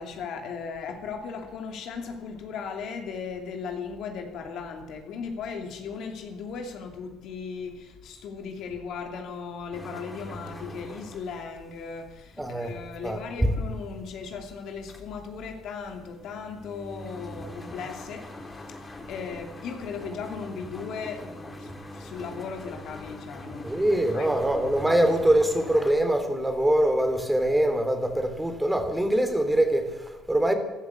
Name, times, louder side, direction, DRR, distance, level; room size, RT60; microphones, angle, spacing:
voice 1, 0.0-24.9 25.6-25.7, left 5 dB, 70° left, 2.7 m, -37 dB
sound 1, 9.7-25.9, left 1 dB, 20° left, 3.5 m, -43 dB
voice 2, 12.4-12.7 13.0-13.5 23.6-30.6, right 1 dB, 10° right, 2.9 m, -23 dB
14.0 x 12.0 x 8.3 m
supercardioid pair, 75°, 0 cm